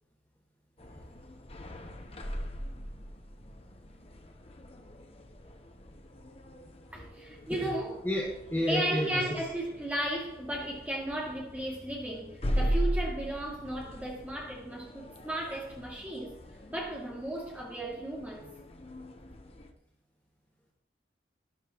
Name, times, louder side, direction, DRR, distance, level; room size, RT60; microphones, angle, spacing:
sound 1, 0.8-19.7, equal, 35° left, 0.8 m, -39 dB
voice 1, 6.9-8.0 8.7-16.4 16.7-18.5, right 1 dB, 10° right, 2.2 m, -35 dB
voice 2, 8.0-9.3, equal, 10° left, 1.4 m, -31 dB
12.5 x 10.5 x 2.9 m
head